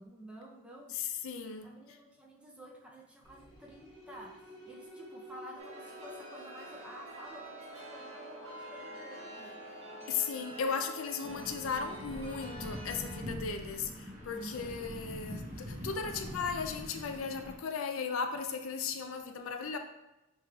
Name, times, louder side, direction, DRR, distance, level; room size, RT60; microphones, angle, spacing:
voice 1, 0.0-1.2 1.6-9.6 13.6-14.7 15.8-16.4, equal, 5° right, -2 dB, 0.5 m, -51 dB
voice 2, 0.9-1.7 10.1-13.9 14.3-19.8, left 5 dB, 75° left, 6 dB, 0.4 m, -36 dB
sound 1, 3.2-10.9, equal, 20° left, 1.4 m, -52 dB
Chime, 5.6-13.2, right 1 dB, 65° right, 1.5 m, -48 dB
sound 2, 11.2-17.5, equal, 35° right, 0.8 m, -44 dB
6.6 x 3.1 x 2.3 m, 0.92 s
head